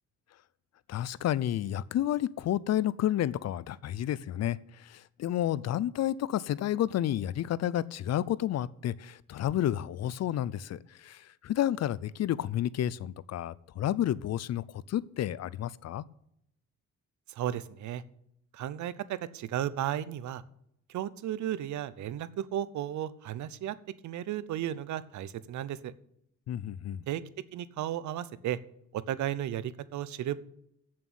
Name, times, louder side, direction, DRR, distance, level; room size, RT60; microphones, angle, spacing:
voice 1, 0.9-16.0 26.5-27.0, left 12 dB, 60° left, 0.6 m, -31 dB
voice 2, 17.3-18.0 18.5-20.4 20.9-23.8 24.0-25.9 27.1-27.2 27.5-28.6 28.9-30.4, right 11 dB, 75° right, 0.8 m, -34 dB
8.3 x 7.5 x 8.7 m
cardioid pair, 90°, 30 cm